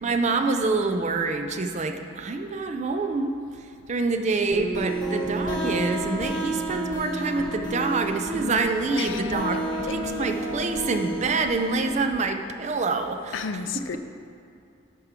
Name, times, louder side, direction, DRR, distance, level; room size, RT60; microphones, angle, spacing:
voice 1, 0.0-13.4, right 3 dB, 40° right, 0.4 m, -26 dB
sound 1, 4.5-12.1, right 1 dB, 20° left, 1.2 m, -30 dB
voice 2, 9.0-9.3 9.9-10.0 13.3-14.0, left 6 dB, 80° left, 0.4 m, -32 dB
8.9 x 5.9 x 3.7 m
head